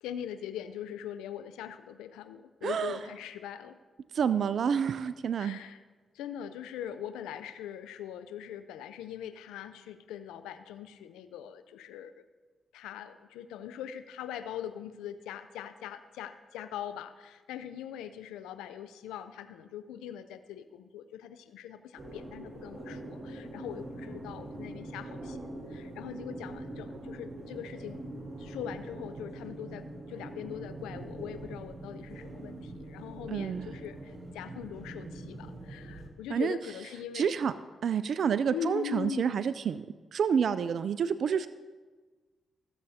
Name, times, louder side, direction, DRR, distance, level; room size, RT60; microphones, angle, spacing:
voice 1, 0.0-3.8 5.4-5.8 6.1-12.2 12.7-28.0 28.4-37.3 38.5-39.5, left 9 dB, 90° left, 11 dB, 0.5 m, -41 dB
voice 2, 2.6-3.0 4.1-5.6 33.3-33.7 36.3-36.6 37.1-37.5 37.8-39.8 40.1-41.5, right 7 dB, 65° right, 14 dB, 0.3 m, -28 dB
sound 1, 22.0-36.1, right 1 dB, 45° right, 2.2 m, -43 dB
15.5 x 7.7 x 2.8 m, 1.3 s
supercardioid pair, 50°, 0 cm